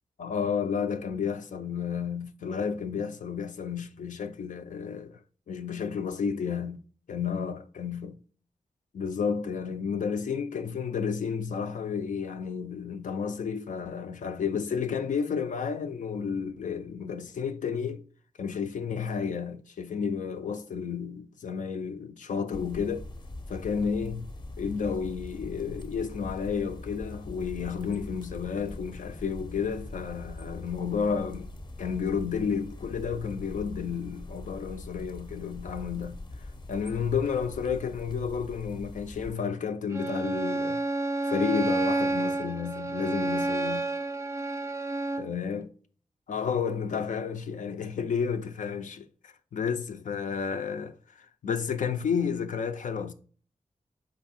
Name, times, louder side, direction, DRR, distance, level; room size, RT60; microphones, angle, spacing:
voice 1, 0.2-5.2 5.5-6.8 7.1-8.2 8.9-18.0 18.4-23.1 23.5-24.3 24.6-31.5 31.8-36.2 36.7-40.8 41.2-43.9 45.2-45.7 46.3-51.0 51.4-53.1, left 6 dB, 75° left, 0.4 m, -31 dB
sound 1, 22.5-39.3, left 2 dB, 35° left, 0.6 m, -42 dB
Bowed string instrument, 39.9-45.4, right 2 dB, 20° right, 0.4 m, -29 dB
4.8 x 2.6 x 4.0 m
wide cardioid pair, 80°, 13 cm